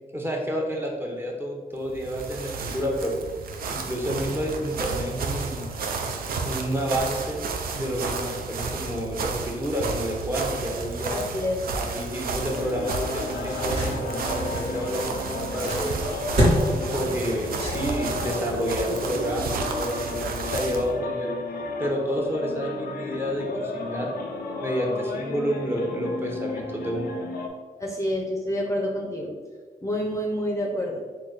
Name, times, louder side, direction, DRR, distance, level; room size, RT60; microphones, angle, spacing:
voice 1, 0.1-3.1 3.7-5.7 6.5-11.2 11.7-16.0 16.9-21.3 21.8-24.1 24.6-27.1, equal, 15° right, -1 dB, 0.8 m, -29 dB
sound 1, 1.8-20.9, right 4 dB, 75° right, 0.4 m, -32 dB
voice 2, 11.1-11.6 27.8-29.3 29.8-31.0, equal, 20° left, -1 dB, 0.5 m, -28 dB
sound 2, 12.5-27.5, left 3 dB, 85° left, 0.4 m, -33 dB
sound 3, 13.1-18.3, equal, 45° right, 1.2 m, -28 dB
3.2 x 2.2 x 3.9 m, 1.4 s
cardioid pair, 60°, 15 cm